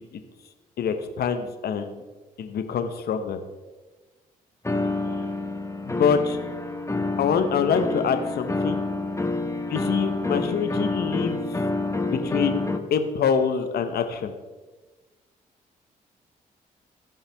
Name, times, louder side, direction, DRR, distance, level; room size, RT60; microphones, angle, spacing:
voice 1, 0.8-2.0 2.4-3.4 5.8-6.4 7.2-8.8 9.7-11.5 12.0-12.6 12.9-14.3, left 6 dB, 65° left, 8 dB, 0.9 m, -25 dB
sound 1, 4.6-12.8, left 2 dB, 15° left, 1.0 m, -28 dB
15.5 x 5.5 x 3.4 m, 1.2 s
hypercardioid pair, 45°, 18 cm